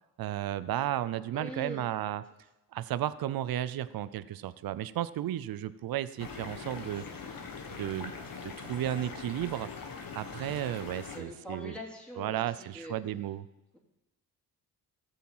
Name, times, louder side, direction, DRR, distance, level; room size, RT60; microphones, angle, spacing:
voice 1, 0.2-2.2 2.7-7.0 7.7-8.1 8.4-9.7 10.1-11.7 12.2-13.5, right 12 dB, 60° right, 15 dB, 0.6 m, -33 dB
voice 2, 1.3-1.9 11.1-13.0, equal, 5° left, -3 dB, 3.2 m, -42 dB
sound 1, 6.2-11.2, left 5 dB, 60° left, 1.7 m, -42 dB
14.5 x 7.2 x 5.6 m, 0.96 s
cardioid pair, 75°, 39 cm